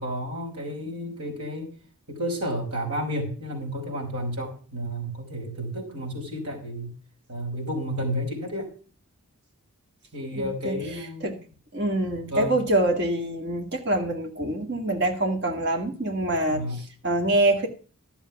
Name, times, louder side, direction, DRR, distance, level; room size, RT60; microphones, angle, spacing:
voice 1, 0.0-1.6 2.1-6.9 7.3-8.7 10.1-11.4 12.3-12.6 16.4-16.8, equal, 80° right, 0 dB, 4.9 m, -31 dB
voice 2, 10.3-10.7 11.2-11.4 11.7-17.7, right 1 dB, 50° right, 3 dB, 2.0 m, -25 dB
13.0 x 7.1 x 5.8 m, 0.39 s
head